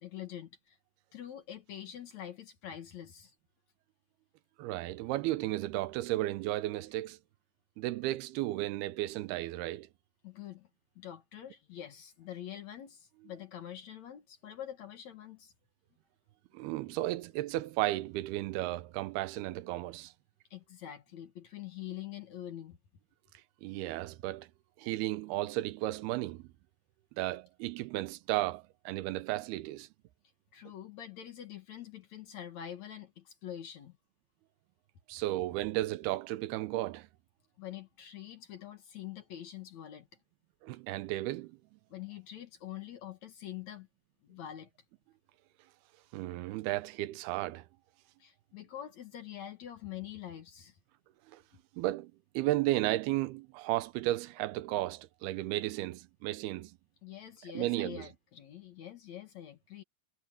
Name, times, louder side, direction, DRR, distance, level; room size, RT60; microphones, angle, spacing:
voice 1, 0.0-0.8 1.1-3.3 10.2-10.7 11.0-15.5 20.5-22.8 30.5-34.0 37.6-40.1 41.9-43.9 44.2-44.7 48.2-50.8 57.0-59.8, left 11 dB, 60° left, 2.2 m, -45 dB
voice 2, 4.6-7.2 7.8-9.9 16.5-20.1 23.6-24.5 24.8-26.4 27.2-29.9 35.1-37.1 40.6-41.6 46.1-47.7 51.3-51.4 51.8-56.8 57.5-58.1, right 16 dB, 85° right, 2.7 m, -34 dB
omnidirectional pair, 4.5 m